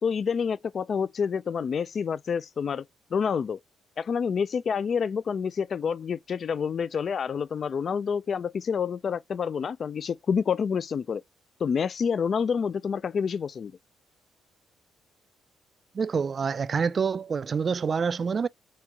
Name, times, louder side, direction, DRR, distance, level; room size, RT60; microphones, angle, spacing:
voice 1, 0.0-2.8 3.1-3.6 4.0-11.2 11.6-13.7, left 6 dB, 50° left, 0.3 m, -28 dB
voice 2, 15.9-18.5, right 6 dB, 40° right, 0.3 m, -27 dB
4.4 x 3.1 x 3.6 m
cardioid pair, 90°, 0 cm